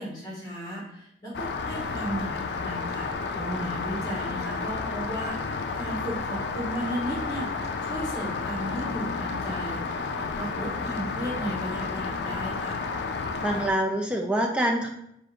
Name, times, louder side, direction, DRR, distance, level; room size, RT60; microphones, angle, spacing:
voice 1, 0.0-7.5 7.8-12.8, equal, 25° left, -5 dB, 1.3 m, -35 dB
Rain, 1.3-13.7, left 4 dB, 80° left, 0.4 m, -31 dB
voice 2, 3.4-3.8 13.4-14.9, right 1 dB, 5° right, 2 dB, 0.4 m, -26 dB
3.6 x 2.6 x 4.2 m, 0.77 s
head